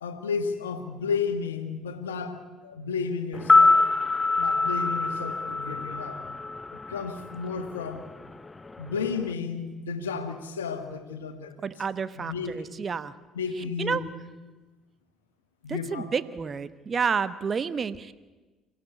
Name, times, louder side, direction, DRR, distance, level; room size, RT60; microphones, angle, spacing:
voice 1, 0.0-3.8 4.4-6.2 6.7-8.1 8.8-11.5 12.2-12.8 13.3-14.0 15.6-16.1, left 5 dB, 90° left, 8 dB, 1.5 m, -32 dB
sound 1, 3.3-7.5 7.8-7.9, left 3 dB, 20° left, 0.7 m, -24 dB
voice 2, 11.6-13.1 13.8-14.0 15.7-18.1, right 6 dB, 40° right, 15 dB, 1.1 m, -30 dB
25.5 x 15.5 x 8.3 m, 1.2 s
hypercardioid pair, 60°, 0 cm